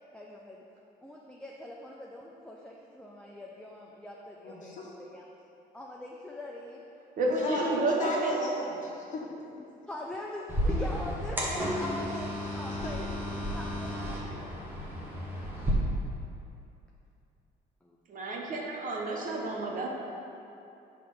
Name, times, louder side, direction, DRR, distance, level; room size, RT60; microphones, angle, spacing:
voice 1, 0.1-0.6 1.0-5.3 5.7-6.8 9.0-13.1 13.5-14.6 15.8-16.0 17.8-18.0, left 1 dB, 5° left, -3 dB, 0.4 m, -43 dB
voice 2, 4.4-4.9 7.3-9.3 12.8-12.9, left 2 dB, 50° left, -4 dB, 1.3 m, -35 dB
voice 3, 7.2-8.4 18.1-19.9, right 2 dB, 50° right, 0 dB, 0.9 m, -30 dB
sound 1, 10.5-15.7, equal, 10° right, 1.0 m, -33 dB
5.8 x 3.3 x 5.4 m, 2.8 s
cardioid pair, 110°, 17 cm